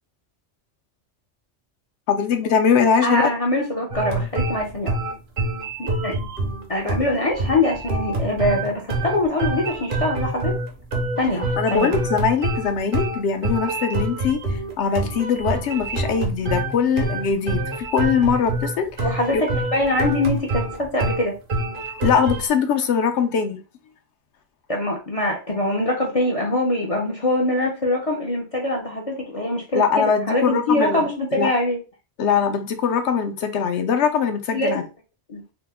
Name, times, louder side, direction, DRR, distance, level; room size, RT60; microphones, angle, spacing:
voice 1, 2.1-3.3 11.6-18.9 19.3-19.4 22.0-23.6 29.7-31.1 31.4-31.5 32.2-34.8, left 6 dB, 75° left, 0.8 m, -21 dB
voice 2, 3.0-4.9 5.8-6.1 6.7-10.5 11.2-12.0 19.0-21.3 24.7-31.8 34.5-34.9 35.3-35.4, left 1 dB, 45° left, 0.5 m, -23 dB
sound 1, 3.9-22.5, right 2 dB, 50° right, 0.8 m, -26 dB
2.9 x 2.0 x 3.4 m
omnidirectional pair, 1.2 m